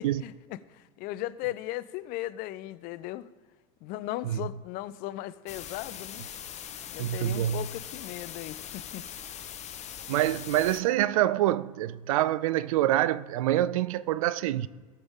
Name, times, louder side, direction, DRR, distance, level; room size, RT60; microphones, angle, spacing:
voice 1, 0.0-3.3 3.8-6.2 6.9-9.1, left 15 dB, 55° left, 0.5 m, -37 dB
sound 1, 5.5-10.8, left 9 dB, 40° left, 0.9 m, -41 dB
voice 2, 7.0-7.7 10.1-14.7, right 13 dB, 75° right, 0.4 m, -26 dB
18.0 x 6.9 x 3.7 m
hypercardioid pair, 80°, 18 cm